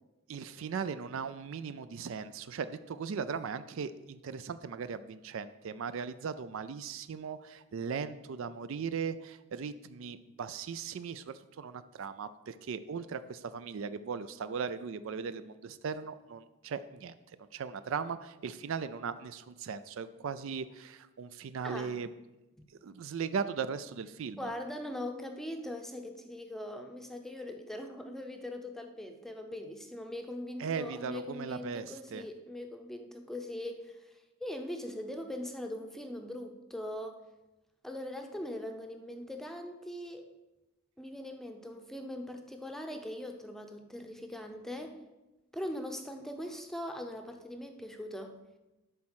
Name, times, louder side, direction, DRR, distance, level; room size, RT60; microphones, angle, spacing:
voice 1, 0.3-22.1 22.8-24.5 30.6-32.3, right 6 dB, 60° right, 13 dB, 0.4 m, -38 dB
voice 2, 21.6-22.0 24.4-34.1 34.4-37.2 37.8-40.3 41.0-45.0 45.5-48.4, left 1 dB, ahead, 4 dB, 0.7 m, -41 dB
11.0 x 4.3 x 6.2 m, 1.0 s
head